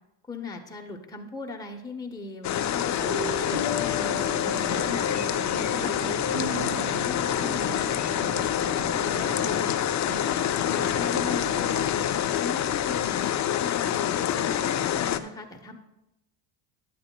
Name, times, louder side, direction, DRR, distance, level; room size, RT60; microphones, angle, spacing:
voice 1, 0.3-5.8 6.3-8.4 8.8-9.7 10.0-12.1 12.4-13.2 13.6-15.8, left 3 dB, 10° left, 1 dB, 0.9 m, -39 dB
sound 1, 2.4-15.2, left 10 dB, 40° left, 0.5 m, -27 dB
sound 2, 3.0-9.5, left 2 dB, 60° right, 2.3 m, -37 dB
sound 3, 4.1-11.8, right 1 dB, 25° right, 2.0 m, -38 dB
11.5 x 9.0 x 2.3 m, 0.90 s
supercardioid pair, 85°, 48 cm